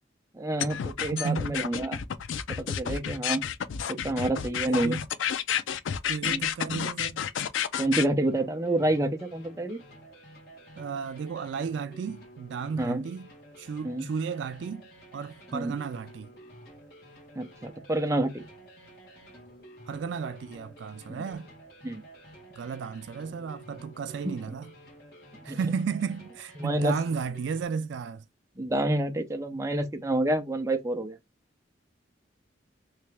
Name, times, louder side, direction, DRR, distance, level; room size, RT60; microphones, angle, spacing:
voice 1, 0.3-2.0 2.6-3.4 3.9-5.0 6.2-6.4 7.8-9.8 12.8-13.0 13.8-14.1 15.5-15.7 17.4-18.4 21.1-21.2 21.8-22.0 25.5-25.6 26.6-26.9 28.6-31.2, right 1 dB, 15° right, 0.5 m, -28 dB
sound 1, 0.6-8.1, left 8 dB, 80° left, 0.4 m, -30 dB
voice 2, 1.1-1.6 2.9-3.0 4.7-5.0 6.1-7.2 10.8-13.3 13.6-16.3 19.9-21.5 22.6-24.7 25.4-28.2, right 5 dB, 65° right, 0.3 m, -33 dB
Heavy African Rave, 8.2-27.7, right 1 dB, 55° left, 1.8 m, -51 dB
3.3 x 3.0 x 3.3 m
head